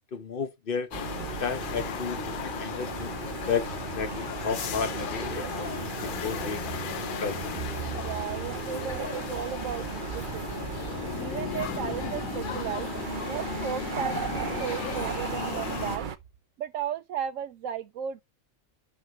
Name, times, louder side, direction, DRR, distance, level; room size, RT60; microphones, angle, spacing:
voice 1, 0.1-0.9 1.4-6.6 7.2-7.4, left 6 dB, 45° left, 1.0 m, -33 dB
sound 1, 0.9-16.0, left 10 dB, 70° left, 0.5 m, -37 dB
sound 2, 0.9-16.2, right 7 dB, 45° right, 0.7 m, -36 dB
voice 2, 7.9-10.7 11.2-12.9 13.2-16.1 16.6-18.2, right 9 dB, 70° right, 1.0 m, -35 dB
Laughter, 9.8-16.1, left 11 dB, 85° left, 1.2 m, -40 dB
11.5 x 4.5 x 3.0 m
omnidirectional pair, 1.5 m